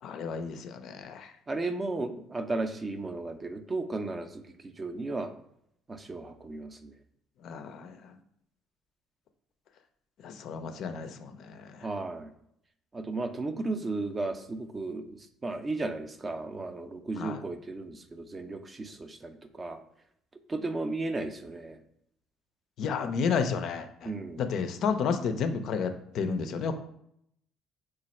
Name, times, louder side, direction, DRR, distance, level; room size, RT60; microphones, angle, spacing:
voice 1, 0.0-1.3 7.4-8.2 10.2-11.9 17.2-17.4 22.8-24.1 24.4-26.7, left 6 dB, 65° left, 8 dB, 0.4 m, -32 dB
voice 2, 1.5-5.3 5.9-6.9 11.8-12.3 12.9-19.8 20.5-21.8 24.0-24.5, right 2 dB, 30° right, 8 dB, 0.4 m, -35 dB
3.1 x 2.3 x 4.1 m, 0.73 s
supercardioid pair, 70°, 0 cm